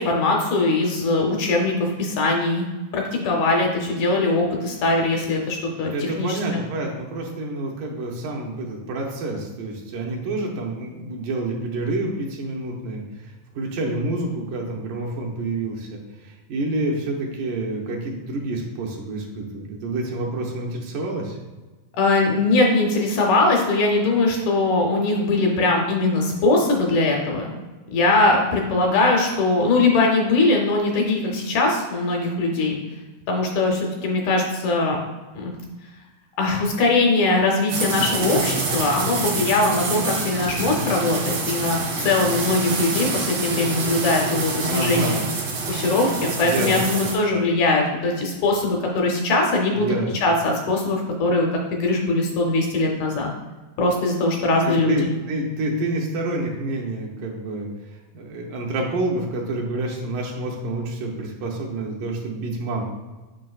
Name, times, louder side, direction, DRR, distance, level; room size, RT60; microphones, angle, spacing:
voice 1, 0.0-2.7 2.9-6.6 21.9-27.5 27.9-32.8 33.3-35.0 35.3-35.5 36.4-45.2 45.7-49.9 50.2-53.3 53.8-55.0, left 2 dB, 70° left, 1 dB, 2.0 m, -21 dB
voice 2, 5.9-21.4 40.6-40.9 44.6-45.3 46.4-47.1 49.7-50.1 54.6-57.7 58.1-62.8, right 2 dB, 75° right, -1 dB, 2.2 m, -28 dB
sound 1, 37.7-47.1, right 4 dB, 60° right, 1.3 m, -27 dB
7.6 x 5.4 x 2.3 m, 1.2 s
omnidirectional pair, 4.0 m